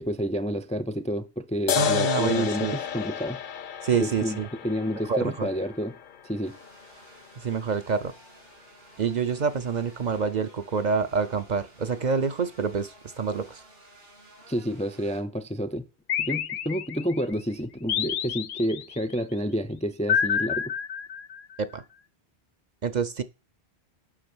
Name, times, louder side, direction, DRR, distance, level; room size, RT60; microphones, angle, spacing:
voice 1, 0.0-3.4 4.0-4.4 4.6-5.9 6.2-6.6 14.5-15.8 16.2-20.7, equal, 10° left, 0.4 m, -29 dB
sound 1, 1.7-8.7, left 9 dB, 55° left, 0.7 m, -32 dB
voice 2, 1.7-2.8 3.8-4.5 5.1-5.5 7.4-8.1 9.0-13.6 21.6-21.8 22.8-23.2, right 5 dB, 50° right, 0.6 m, -27 dB
sound 2, 6.4-15.2, right 1 dB, 70° right, 4.5 m, -53 dB
sound 3, 16.1-17.2 17.9-19.0 20.1-21.6, left 8 dB, 85° left, 0.9 m, -28 dB
8.5 x 6.1 x 6.0 m
omnidirectional pair, 1.1 m